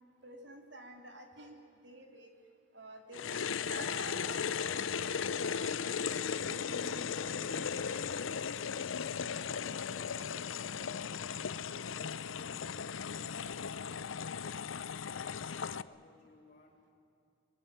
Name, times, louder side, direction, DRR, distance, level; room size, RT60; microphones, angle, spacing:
voice 1, 0.2-1.6 1.8-2.3 2.7-7.9, right 2 dB, 60° right, 4 dB, 3.4 m, -50 dB
sound 1, 3.1-15.8, left 6 dB, 80° left, 0.6 m, -36 dB
voice 2, 9.1-14.1 14.3-16.9, left 2 dB, 40° left, -3 dB, 3.7 m, -60 dB
25.0 x 21.5 x 9.3 m, 2.6 s
head